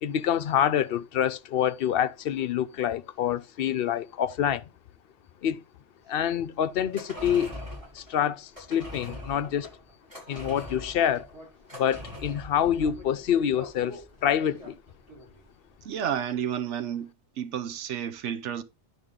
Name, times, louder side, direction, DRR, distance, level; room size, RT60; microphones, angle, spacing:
voice 1, 0.0-4.7 5.4-5.6 6.1-7.5 7.9-9.7 10.3-11.3 11.8-14.8, left 9 dB, 65° left, 0.7 m, -26 dB
sound 1, 6.8-15.4 15.7-15.8, left 1 dB, 30° right, 5.6 m, -42 dB
voice 2, 15.8-17.1 17.4-18.6, right 9 dB, 90° right, 1.0 m, -31 dB
9.6 x 5.4 x 3.7 m
omnidirectional pair, 1.2 m